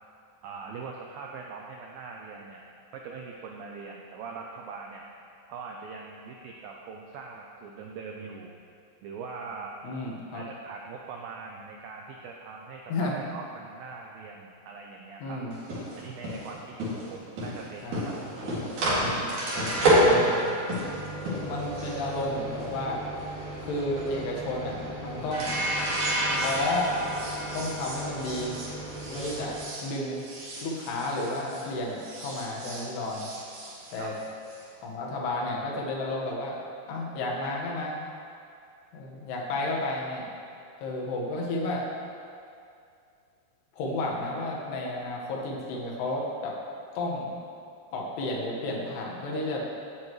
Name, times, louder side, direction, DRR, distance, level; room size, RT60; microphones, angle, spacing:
voice 1, 0.4-2.6 2.9-5.1 5.5-8.6 9.0-9.8 10.3-15.4 15.9-18.6 34.0-34.1, right 5 dB, 80° right, 0 dB, 2.0 m, -42 dB
voice 2, 9.8-10.4 12.9-13.2 15.2-15.6 17.8-18.2 19.2-19.3 19.6-20.5 21.4-23.0 23.6-25.7 26.3-26.9 27.5-28.6 29.1-29.6 29.8-30.2 30.6-33.3 33.9-34.1 34.8-36.6 36.9-38.0 38.9-40.3 40.8-41.9 43.7-46.6 47.0-47.4 47.9-49.6, left 2 dB, 70° left, -2 dB, 3.5 m, -32 dB
sound 1, 15.5-31.7 32.0-34.6, right 1 dB, 50° right, 3.5 m, -30 dB
17.0 x 10.0 x 3.2 m, 2.5 s
omnidirectional pair, 5.0 m